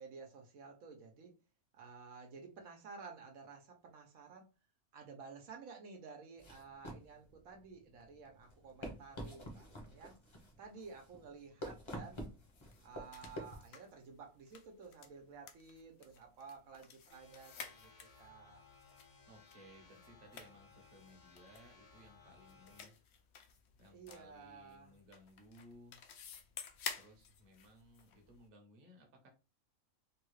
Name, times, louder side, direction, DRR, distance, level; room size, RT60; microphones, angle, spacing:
voice 1, 0.0-1.3 1.7-4.5 4.9-10.1 10.6-12.3 12.8-17.9 18.2-18.6 23.9-25.0, right 5 dB, 75° right, 3 dB, 1.2 m, -53 dB
sound 1, 6.4-13.6, equal, 25° left, 0.7 m, -49 dB
sound tripod opening and situating on tile floor homemade, 12.4-28.5, left 6 dB, 65° left, 0.7 m, -53 dB
sound 2, 17.1-22.9, left 5 dB, 85° left, 1.4 m, -62 dB
voice 2, 19.3-23.0 23.8-26.0 27.0-29.3, equal, 45° right, 2 dB, 1.0 m, -60 dB
3.4 x 2.3 x 3.1 m, 0.30 s
omnidirectional pair, 1.5 m